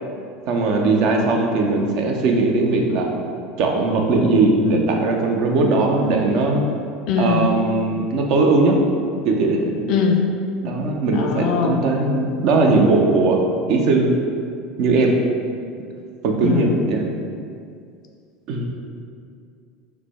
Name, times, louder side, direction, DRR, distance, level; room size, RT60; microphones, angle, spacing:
voice 1, 0.5-3.2 3.6-6.6 7.2-8.8 9.2-9.6 10.6-13.4 13.7-14.1 14.8-15.2 16.2-17.1 18.5-18.7, right 3 dB, 60° right, 1 dB, 0.4 m, -19 dB
voice 2, 7.1-7.5 9.9-10.2 11.1-11.8 16.4-16.9, left 6 dB, 55° left, 3 dB, 0.3 m, -20 dB
3.2 x 2.1 x 3.0 m, 2.3 s
hypercardioid pair, 80°, 0 cm